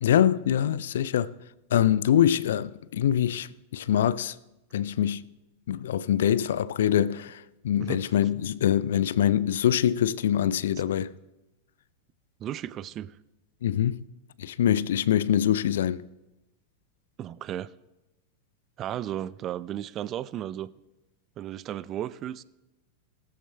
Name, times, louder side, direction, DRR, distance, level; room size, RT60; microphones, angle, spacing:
voice 1, 0.0-1.3 1.7-4.3 4.7-5.2 5.7-11.1 13.6-14.0 14.4-16.0, left 10 dB, 60° left, 0.4 m, -24 dB
voice 2, 12.4-13.2 17.2-17.7 18.8-20.7 21.4-22.4, right 11 dB, 30° right, 0.4 m, -34 dB
19.0 x 14.0 x 2.2 m
figure-of-eight pair, 90°, 0 cm